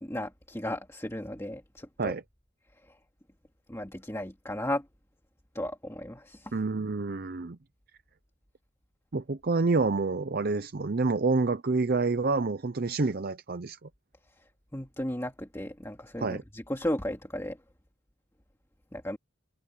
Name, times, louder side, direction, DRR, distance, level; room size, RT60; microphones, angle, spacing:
voice 1, 0.0-2.1 2.8-3.0 3.7-4.9 5.5-6.5 14.4-14.5 14.7-17.6 18.9-19.2, left 1 dB, 15° left, 2.5 m, -35 dB
voice 2, 6.5-7.6 9.1-13.9 16.2-16.4, right 3 dB, 50° right, 0.6 m, -28 dB
head